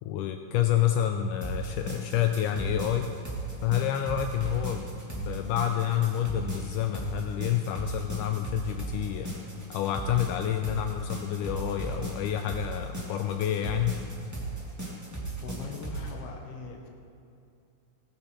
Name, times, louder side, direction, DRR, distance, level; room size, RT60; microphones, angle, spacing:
voice 1, 0.0-3.1 3.6-4.9 5.2-9.3 9.7-14.0, left 11 dB, 85° left, 6 dB, 1.8 m, -28 dB
sound 1, 1.4-16.1, right 3 dB, 5° right, 1.3 m, -36 dB
voice 2, 15.4-16.9, left 4 dB, 55° left, 1 dB, 1.9 m, -40 dB
18.5 x 9.6 x 4.4 m, 2.5 s
omnidirectional pair, 4.2 m